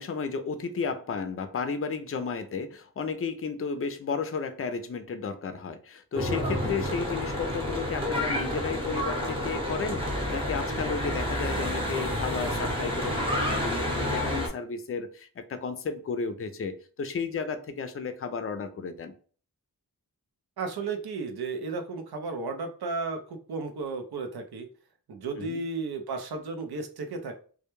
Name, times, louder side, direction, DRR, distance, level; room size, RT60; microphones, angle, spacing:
voice 1, 0.0-19.2 25.4-25.6, left 5 dB, 35° left, 0.4 m, -33 dB
Church bell / Traffic noise roadway noise, 6.1-14.5, left 1 dB, 15° right, 0.8 m, -29 dB
voice 2, 20.6-24.7 25.1-27.3, right 4 dB, 80° right, 0.6 m, -34 dB
2.2 x 2.1 x 3.0 m
wide cardioid pair, 55°, 38 cm